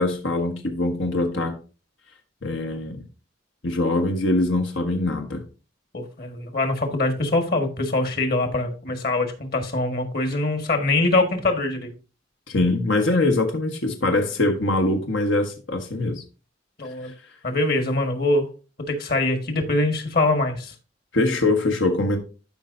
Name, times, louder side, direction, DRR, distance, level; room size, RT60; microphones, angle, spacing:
voice 1, 0.0-1.6 2.4-3.0 3.6-5.4 12.5-16.2 17.0-17.1 21.1-22.2, left 2 dB, 85° left, 1.2 m, -23 dB
voice 2, 5.9-11.9 16.8-17.1 17.4-18.5 18.9-20.7, left 2 dB, 55° left, 1.6 m, -23 dB
12.5 x 5.4 x 2.6 m
head